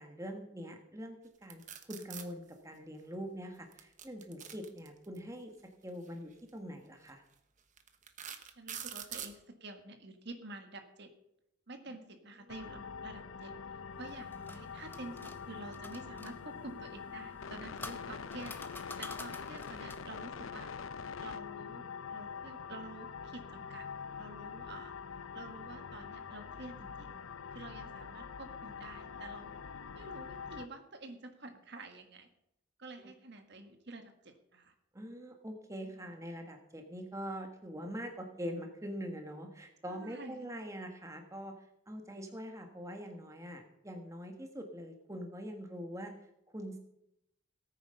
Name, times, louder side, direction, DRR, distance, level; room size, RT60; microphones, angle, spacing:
voice 1, 0.0-1.6 1.9-5.5 5.8-7.2 33.0-33.1 34.9-46.1 46.5-46.8, equal, 15° right, 4 dB, 1.6 m, -43 dB
sound 1, 1.5-2.3 3.7-5.2 6.3-6.5 7.1-7.2 7.8-9.4, right 8 dB, 35° right, 1.1 m, -44 dB
voice 2, 8.6-11.1 11.7-13.5 14.0-20.7 21.2-23.9 24.2-24.9 25.3-27.2 27.5-29.5 29.9-32.3 32.8-34.7 39.8-40.5, right 2 dB, 55° right, 6 dB, 1.7 m, -49 dB
sound 2, 12.5-30.7, left 6 dB, 80° left, 0.7 m, -45 dB
sound 3, 14.0-16.4 17.3-20.2, left 3 dB, 10° left, 0.8 m, -48 dB
18.0 x 9.2 x 5.7 m, 0.82 s
head